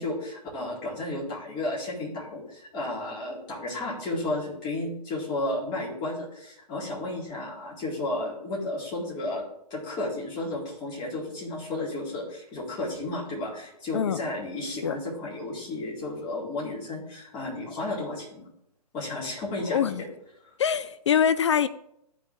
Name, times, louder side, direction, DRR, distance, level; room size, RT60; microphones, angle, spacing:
voice 1, 0.0-18.5 18.9-19.9 20.5-20.6, left 2 dB, 20° left, -6 dB, 4.1 m, -33 dB
voice 2, 19.7-20.0 20.6-21.7, left 8 dB, 45° left, 14 dB, 0.4 m, -24 dB
14.5 x 5.4 x 3.7 m, 0.76 s
figure-of-eight pair, 130°, 21 cm